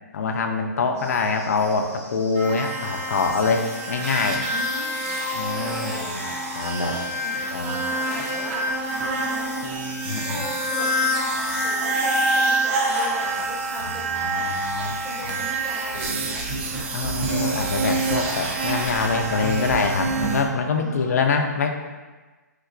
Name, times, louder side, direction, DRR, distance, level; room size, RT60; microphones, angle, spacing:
voice 1, 0.1-4.4 5.3-6.2 6.5-6.9 7.5-7.7 10.0-10.4 14.1-14.9 15.3-15.4 16.9-21.7, left 4 dB, 60° left, 4 dB, 0.4 m, -25 dB
sound 1, 0.9-20.1, right 1 dB, 55° right, 1.3 m, -47 dB
sound 2, 2.3-20.4, right 1 dB, 40° right, 0.5 m, -26 dB
voice 2, 4.4-5.2 5.5-6.4 6.8-9.7 10.2-17.3 20.8-21.4, equal, 5° left, -8 dB, 0.6 m, -38 dB
3.1 x 2.8 x 2.4 m, 1.3 s
figure-of-eight pair, 130°, 10 cm